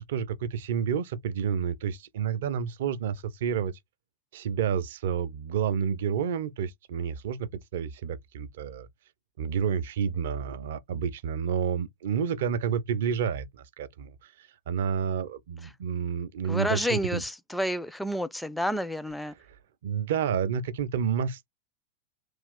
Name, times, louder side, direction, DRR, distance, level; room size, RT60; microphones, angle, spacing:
voice 1, 0.0-3.7 4.3-8.9 9.4-17.2 19.8-21.5, right 7 dB, 55° right, 0.5 m, -30 dB
voice 2, 16.5-19.3, equal, 5° left, 0.4 m, -30 dB
3.2 x 2.3 x 3.5 m
figure-of-eight pair, 90°, 0 cm